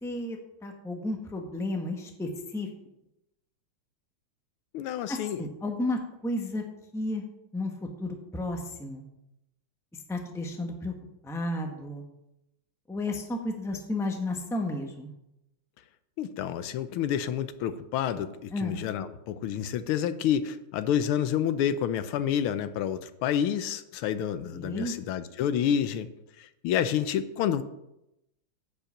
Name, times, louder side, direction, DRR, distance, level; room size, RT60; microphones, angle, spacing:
voice 1, 0.0-2.7 5.1-6.6 6.9-7.2 7.5-9.0 10.1-10.9 11.2-12.0 12.9-15.1 18.5-18.8 24.5-24.9, left 1 dB, ahead, 2 dB, 0.8 m, -32 dB
voice 2, 4.7-5.4 16.2-26.1 26.4-27.6, left 9 dB, 85° left, 12 dB, 1.6 m, -29 dB
10.0 x 5.5 x 7.2 m, 0.87 s
omnidirectional pair, 2.3 m